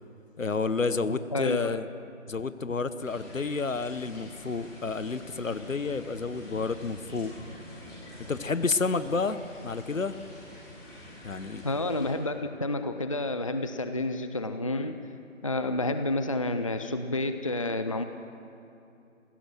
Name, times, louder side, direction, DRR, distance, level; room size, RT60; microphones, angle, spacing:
voice 1, 0.4-1.9 2.3-7.3 8.3-9.4 9.6-10.1 11.2-11.6, left 4 dB, 75° left, 13 dB, 1.2 m, -30 dB
voice 2, 1.3-1.8 11.6-15.0 15.4-18.0, left 2 dB, 25° left, 8 dB, 0.5 m, -30 dB
sound 1, 3.0-12.1, left 1 dB, 10° left, 6.5 m, -47 dB
27.0 x 16.5 x 6.3 m, 2.8 s
figure-of-eight pair, 150°, 39 cm